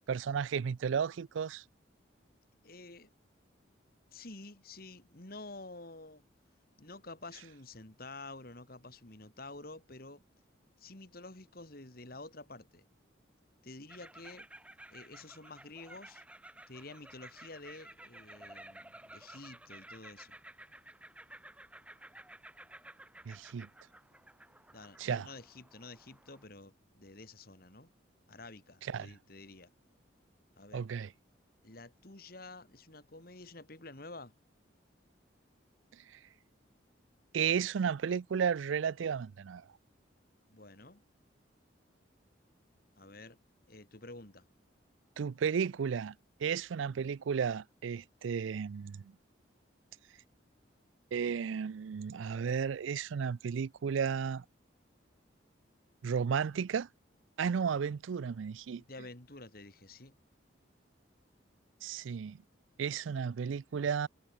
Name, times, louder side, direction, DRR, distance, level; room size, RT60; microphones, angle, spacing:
voice 1, 0.1-1.6 23.3-23.7 25.0-25.3 28.9-29.1 30.7-31.1 37.3-39.6 45.2-46.1 46.4-49.0 51.1-54.4 56.0-56.9 57.4-58.8 61.8-62.4 62.8-64.1, right 6 dB, 80° right, 0.4 m, -33 dB
voice 2, 2.6-3.1 4.1-6.2 6.8-10.3 10.8-12.8 13.6-14.5 14.9-16.2 16.7-20.4 24.7-27.9 28.3-29.7 30.6-30.9 31.6-34.3 40.5-41.0 43.0-43.4 43.7-44.4 58.7-60.1, left 2 dB, 50° left, 2.6 m, -50 dB
sound 1, 13.9-26.4, right 1 dB, 5° right, 1.1 m, -54 dB
head